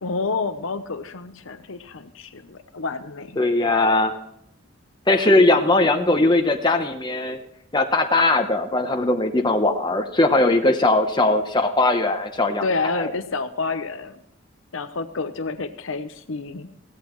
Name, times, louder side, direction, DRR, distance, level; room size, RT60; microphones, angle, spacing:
voice 1, 0.0-3.4 12.6-14.2 14.7-16.7, left 3 dB, 70° left, 9 dB, 0.8 m, -29 dB
voice 2, 3.4-4.2 5.1-7.4 7.7-12.7 12.9-13.1, left 2 dB, 20° left, 4 dB, 0.9 m, -19 dB
16.5 x 14.0 x 3.1 m, 0.76 s
head